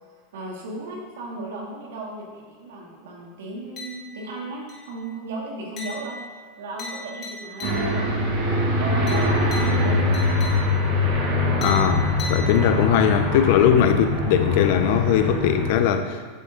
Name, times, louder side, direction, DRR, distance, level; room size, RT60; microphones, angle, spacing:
voice 1, 0.3-6.2 6.6-10.1, right 2 dB, 90° right, -2 dB, 2.4 m, -35 dB
sound 1, 3.8-4.3 4.7-5.1 5.8-8.2 9.1-11.0 11.6-13.0, left 2 dB, 25° left, 2.0 m, -38 dB
Aircraft, 7.6-15.7, left 2 dB, 45° right, 2.1 m, -23 dB
voice 2, 11.6-16.2, left 9 dB, 50° left, 8 dB, 0.5 m, -20 dB
8.7 x 7.5 x 3.7 m, 1.5 s
supercardioid pair, 170°, 0 cm